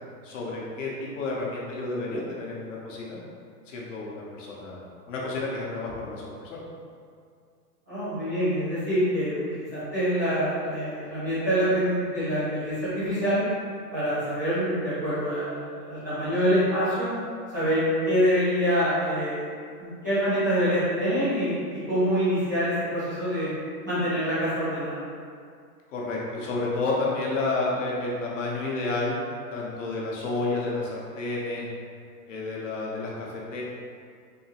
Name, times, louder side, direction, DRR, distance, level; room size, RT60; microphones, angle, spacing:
voice 1, 0.2-3.2 3.7-6.6 25.9-29.2 29.5-31.7 32.3-33.6, left 2 dB, 50° left, -4 dB, 0.8 m, -30 dB
voice 2, 7.9-13.4 13.9-17.1 17.5-19.5 19.8-23.5 23.8-25.0, equal, 15° right, -15 dB, 0.4 m, -25 dB
3.6 x 2.6 x 2.8 m, 2.2 s
hypercardioid pair, 165°, 48 cm